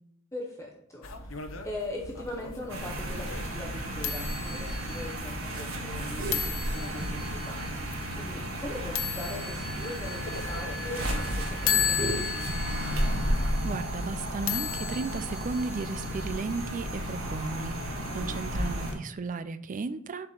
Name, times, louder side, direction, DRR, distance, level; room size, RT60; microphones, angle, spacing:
voice 1, 0.3-7.6 8.2-12.3, left 1 dB, 15° left, -2 dB, 0.9 m, -41 dB
sound 1, 1.0-16.3, left 7 dB, 70° left, 0.8 m, -36 dB
sound 2, 2.7-18.9, equal, 85° right, 1.6 m, -33 dB
sound 3, 6.0-8.0 9.1-16.1, right 2 dB, 65° right, 1.7 m, -43 dB
voice 2, 13.6-20.3, right 4 dB, 40° right, 13 dB, 0.4 m, -35 dB
7.5 x 4.5 x 3.9 m, 0.74 s
head